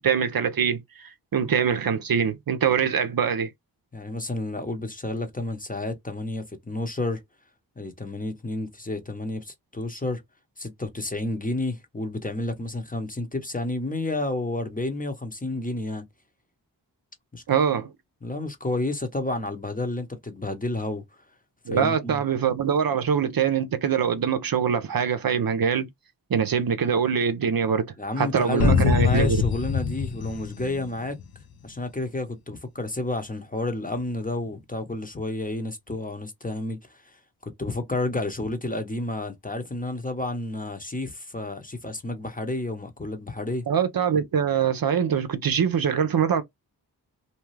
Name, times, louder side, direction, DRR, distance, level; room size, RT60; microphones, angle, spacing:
voice 1, 0.0-3.5 17.5-17.9 21.7-25.9 26.3-27.9 28.2-29.4 43.7-46.4, right 7 dB, 60° right, 0.6 m, -23 dB
voice 2, 3.9-7.2 7.8-10.2 10.6-16.0 17.3-17.4 18.2-21.0 21.7-22.2 28.0-31.2 31.6-37.2 37.4-43.6, left 2 dB, 20° left, 0.9 m, -30 dB
sound 1, 28.6-31.3, left 6 dB, 60° left, 0.7 m, -24 dB
2.8 x 2.3 x 3.1 m
cardioid pair, 45°, 41 cm